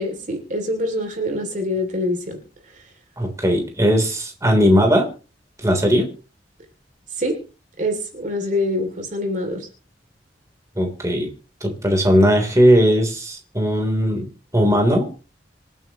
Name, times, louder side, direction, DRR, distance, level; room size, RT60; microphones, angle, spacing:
voice 1, 0.0-2.4 7.1-7.4 7.8-9.7, left 1 dB, 45° right, 4 dB, 2.8 m, -25 dB
voice 2, 3.2-5.1 5.6-6.1 10.7-11.3 11.6-15.1, equal, 20° right, 3 dB, 3.4 m, -18 dB
26.5 x 9.2 x 3.0 m, 0.34 s
head